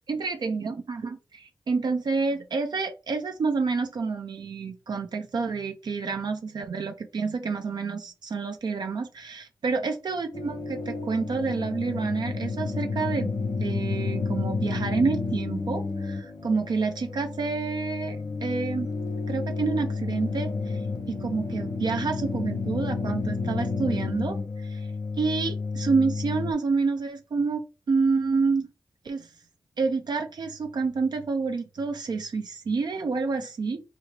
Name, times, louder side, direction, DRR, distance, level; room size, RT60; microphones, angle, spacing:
voice 1, 0.1-13.3 13.6-18.9 19.3-20.8 21.1-24.9 25.2-27.6 27.9-28.7 29.0-29.3 29.8-33.8, right 4 dB, 75° right, 5 dB, 0.5 m, -28 dB
sound 1, 10.3-26.5, left 4 dB, 75° left, 1.2 m, -31 dB
4.3 x 2.5 x 3.0 m, 0.30 s
wide cardioid pair, 70°, 7 cm